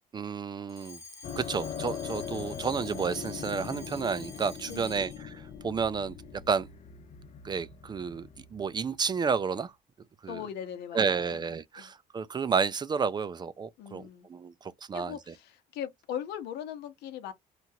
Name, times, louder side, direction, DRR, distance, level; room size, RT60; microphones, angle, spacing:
voice 1, 0.1-1.0 1.4-5.3 5.6-6.2 6.5-6.7 7.4-9.7 10.2-10.4 10.9-14.0 14.3-15.2, right 5 dB, 25° right, 0.3 m, -31 dB
Alarm, 0.7-5.3, left 4 dB, 15° left, 1.1 m, -48 dB
sound 1, 1.2-9.6, left 7 dB, 45° left, 0.5 m, -41 dB
voice 2, 4.7-5.2 10.3-11.5 11.8-11.9 13.8-14.3 14.9-17.3, left 9 dB, 80° left, 0.9 m, -40 dB
3.0 x 2.4 x 2.7 m
cardioid pair, 110°, 17 cm